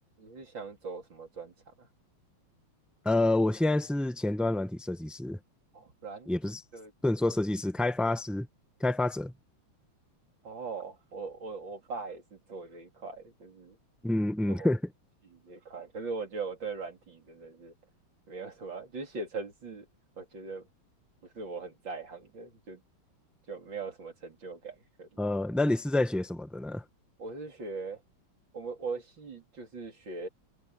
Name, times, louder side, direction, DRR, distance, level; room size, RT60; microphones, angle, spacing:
voice 1, 0.2-1.9 5.7-6.3 6.7-6.9 10.4-13.8 14.5-14.7 15.3-17.7 18.3-19.9 20.2-20.7 21.4-22.8 23.5-25.1 27.2-28.0 28.5-30.3, right 4 dB, 65° right, 4.1 m, -40 dB
voice 2, 3.0-5.4 6.3-6.6 7.0-8.5 8.8-9.3 14.0-14.8 25.2-26.8, left 2 dB, ahead, 0.9 m, -28 dB
omnidirectional pair, 2.3 m